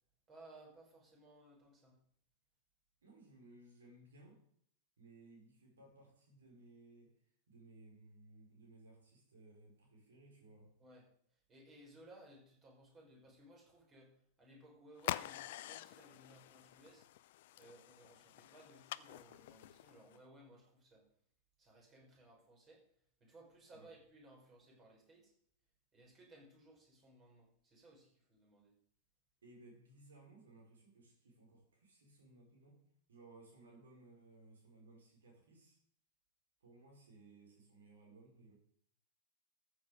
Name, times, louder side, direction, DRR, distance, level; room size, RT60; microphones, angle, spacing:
voice 1, 0.3-2.0 10.8-11.1 11.5-17.1 17.6-21.0 21.6-22.9 23.2-25.3 25.9-28.7, right 1 dB, 25° right, -1 dB, 5.6 m, -61 dB
voice 2, 3.0-4.4 5.0-10.8 23.7-23.9 29.4-32.8 33.1-35.8 36.6-38.5, right 2 dB, 65° right, 1 dB, 5.0 m, -61 dB
sound 1, 15.0-20.2, left 15 dB, 55° left, 0.4 m, -46 dB
14.0 x 8.3 x 5.1 m, 0.63 s
figure-of-eight pair, 90°, 0 cm